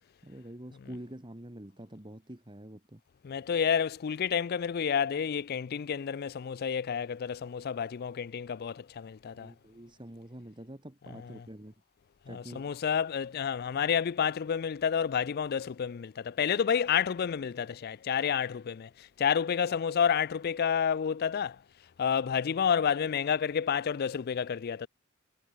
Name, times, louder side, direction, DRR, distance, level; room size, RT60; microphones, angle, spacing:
voice 1, 0.2-3.0 9.3-11.7 12.3-12.7, right 1 dB, 20° right, 1.6 m, -46 dB
voice 2, 3.2-9.5 12.3-21.6 22.0-24.9, left 7 dB, 45° left, 0.3 m, -30 dB
head